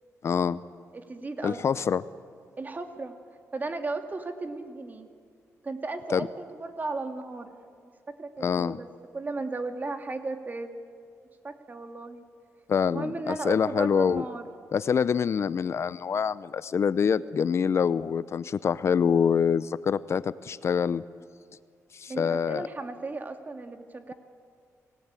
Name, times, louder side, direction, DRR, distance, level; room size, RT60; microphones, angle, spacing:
voice 1, 0.2-0.6 1.4-2.0 6.1-6.3 8.4-8.8 12.7-14.2 14.7-21.0 21.9-22.7, left 7 dB, 55° left, 16 dB, 0.6 m, -25 dB
voice 2, 0.9-1.8 2.6-3.1 3.5-5.1 5.6-7.6 7.8-8.9 9.1-10.7 11.4-12.2 12.9-14.4 22.1-24.1, right 3 dB, 30° right, 6 dB, 2.3 m, -35 dB
26.5 x 18.5 x 9.0 m, 2.2 s
cardioid pair, 85°, 6 cm